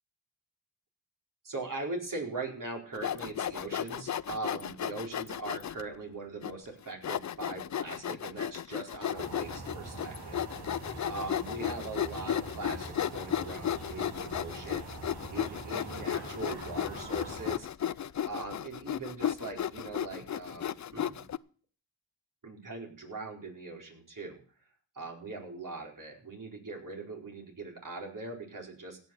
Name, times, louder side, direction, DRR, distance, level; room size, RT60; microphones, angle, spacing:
voice 1, 1.4-10.4 10.7-14.9 15.3-17.7 18.3-21.3 22.4-24.4 24.9-29.0, right 3 dB, 45° right, 1 dB, 4.8 m, -41 dB
Sawing, 2.9-5.8 6.4-6.5 7.0-21.4, left 10 dB, 40° left, 0.5 m, -34 dB
sound 1, 9.1-17.6, right 3 dB, 60° right, 3.7 m, -44 dB
16.5 x 6.5 x 8.0 m, 0.43 s
cardioid pair, 60°, 43 cm